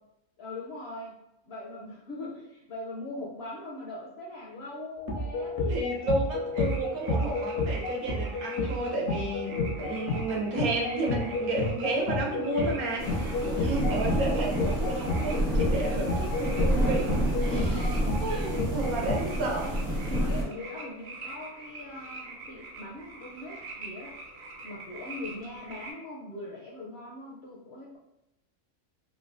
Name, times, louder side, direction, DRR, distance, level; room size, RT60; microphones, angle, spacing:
voice 1, 0.4-1.2 1.5-5.8 13.4-13.7 17.6-18.2 19.0-19.2 20.1-24.2 24.6-28.0, left 2 dB, 65° left, -3 dB, 0.6 m, -41 dB
sound 1, 5.1-19.2, left 2 dB, 80° left, 1.1 m, -31 dB
voice 2, 5.7-17.9 18.2-19.8, right 2 dB, 85° right, -1 dB, 1.1 m, -32 dB
sound 2, 6.5-25.9, right 2 dB, 70° right, 0.4 m, -46 dB
sound 3, 13.0-20.4, equal, 50° right, 0.8 m, -29 dB
3.2 x 2.1 x 2.5 m, 0.87 s
omnidirectional pair, 1.5 m